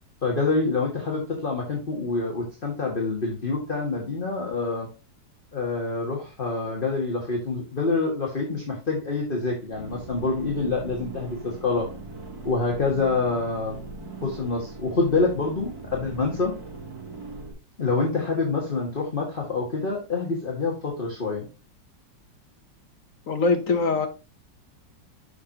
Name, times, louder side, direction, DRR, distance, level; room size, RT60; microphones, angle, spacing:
voice 1, 0.2-4.9 5.5-11.9 12.4-13.8 14.2-16.5 17.8-21.5, left 3 dB, 30° left, -1 dB, 1.8 m, -26 dB
sound 1, 9.7-17.5, right 3 dB, 55° right, 3.4 m, -40 dB
voice 2, 23.3-24.1, left 3 dB, 55° left, 7 dB, 1.1 m, -22 dB
7.1 x 6.4 x 2.8 m, 0.29 s
omnidirectional pair, 2.0 m